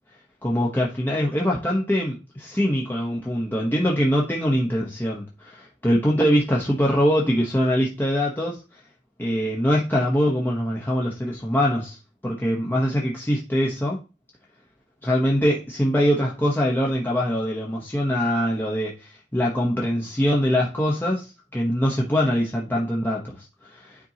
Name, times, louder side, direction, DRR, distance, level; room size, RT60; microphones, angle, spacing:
voice 1, 0.4-8.6 9.2-12.0 12.2-14.0 15.0-23.4 23.7-24.0, equal, 10° left, 1.0 m, -23 dB
9.8 x 4.5 x 2.9 m
head